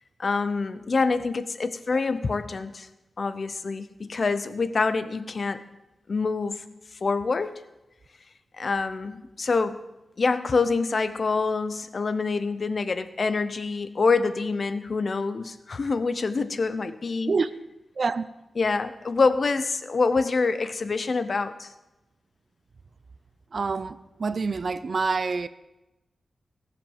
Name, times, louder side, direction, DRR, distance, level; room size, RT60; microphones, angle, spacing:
voice 1, 0.2-2.9 3.2-5.6 6.1-6.6 7.0-7.6 8.6-9.8 10.2-17.3 18.6-21.7, left 4 dB, 40° left, 0.8 m, -26 dB
voice 2, 23.5-25.5, right 4 dB, 40° right, 0.5 m, -27 dB
17.0 x 7.7 x 7.3 m
wide cardioid pair, 180°, 0 cm